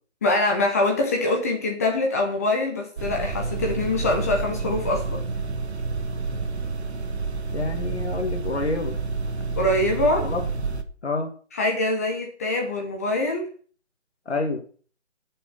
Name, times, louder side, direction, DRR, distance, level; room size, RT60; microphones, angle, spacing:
voice 1, 0.2-5.2 9.6-10.3 11.5-13.5, left 2 dB, 15° left, 1 dB, 1.0 m, -24 dB
sound 1, 3.0-10.8, right 4 dB, 65° right, 1.4 m, -29 dB
voice 2, 7.5-9.0 10.2-10.4 11.0-11.3 14.3-14.6, left 3 dB, 65° left, 4 dB, 2.1 m, -28 dB
13.0 x 6.8 x 5.9 m, 0.43 s
figure-of-eight pair, 165°, 36 cm